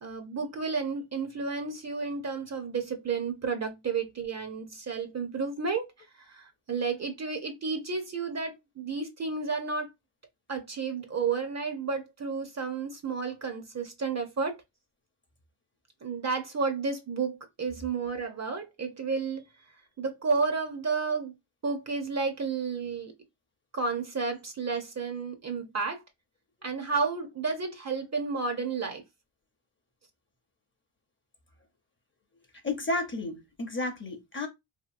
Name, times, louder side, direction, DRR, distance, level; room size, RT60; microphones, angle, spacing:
voice 1, 0.0-5.9 6.2-9.9 10.5-14.6 16.0-19.4 20.0-21.3 21.6-23.1 23.7-26.0 26.6-29.0, right 4 dB, 35° right, 0.6 m, -31 dB
voice 2, 32.6-34.5, left 2 dB, 25° left, 0.7 m, -32 dB
2.8 x 2.5 x 2.5 m
cardioid pair, 80°, 48 cm